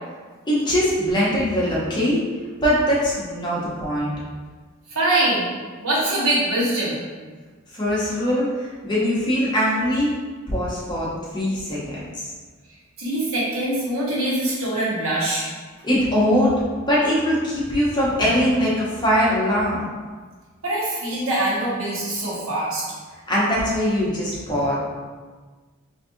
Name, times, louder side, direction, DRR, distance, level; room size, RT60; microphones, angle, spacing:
voice 1, 0.5-2.2 2.6-4.1 7.7-8.5 8.8-10.1 10.5-11.1 11.3-12.3 15.8-16.5 16.9-19.9 23.3-24.8, equal, 20° left, -7 dB, 0.7 m, -21 dB
voice 2, 4.9-5.5 5.8-7.0 13.0-15.5 20.6-22.8, right 1 dB, 70° right, -7 dB, 1.1 m, -23 dB
3.9 x 2.5 x 2.6 m, 1.4 s
head